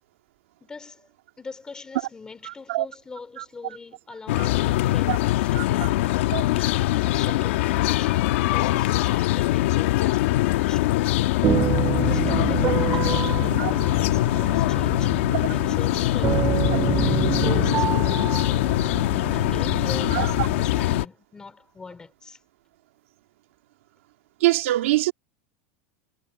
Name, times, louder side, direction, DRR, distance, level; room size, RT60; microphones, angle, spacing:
voice 1, 0.6-1.1 1.4-6.2 6.5-11.2 12.0-15.2 15.5-16.6 17.0-18.7 19.3-22.4, left 4 dB, 10° left, 3.1 m, -42 dB
voice 2, 2.5-2.8 3.4-3.5 4.4-4.5 5.1-5.2 5.5-5.6 6.3-6.4 11.8-11.9 13.6-13.7 16.7-16.8 20.1-20.5 24.4-25.1, right 17 dB, 90° right, 2.4 m, -24 dB
sound 1, 4.3-21.0, left 16 dB, 75° left, 1.4 m, -22 dB
sound 2, 11.4-21.0, right 10 dB, 20° right, 0.3 m, -28 dB
supercardioid pair, 170°, 7 cm